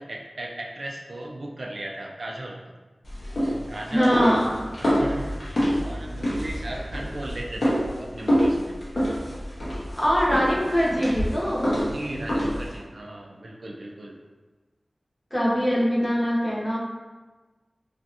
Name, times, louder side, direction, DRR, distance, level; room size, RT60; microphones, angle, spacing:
voice 1, 0.0-2.7 3.3-3.4 3.7-4.4 4.8-8.8 11.9-14.2, right 1 dB, 80° right, -1 dB, 0.3 m, -36 dB
sound 1, 3.0-12.8, equal, 70° left, 0.8 m, -27 dB
voice 2, 3.9-4.5 9.9-11.7 15.3-16.8, equal, 20° left, -7 dB, 0.9 m, -22 dB
2.6 x 2.4 x 2.4 m, 1.2 s
wide cardioid pair, 45°, 0 cm